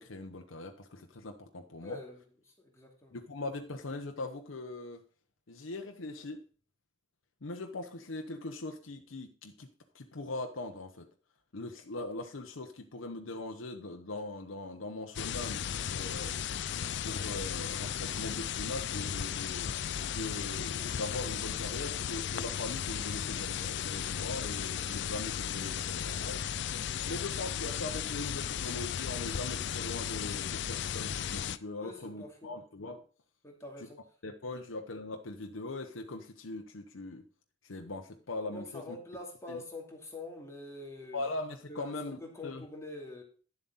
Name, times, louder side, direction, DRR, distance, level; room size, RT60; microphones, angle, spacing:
voice 1, 0.0-2.0 3.1-5.0 5.5-6.4 7.4-9.7 9.9-11.1 11.5-16.4 17.0-19.7 20.1-26.4 27.0-33.0 33.8-33.9 34.2-37.2 37.6-39.0 39.5-39.6 41.1-42.6, left 2 dB, 80° left, 0.9 m, -41 dB
voice 2, 1.8-2.2 2.6-3.2 31.8-32.6 33.4-34.0 38.5-41.3 41.7-43.2, left 2 dB, 15° left, 2.5 m, -45 dB
sound 1, 15.1-31.6, left 8 dB, 60° left, 0.4 m, -35 dB
11.0 x 7.5 x 4.0 m
head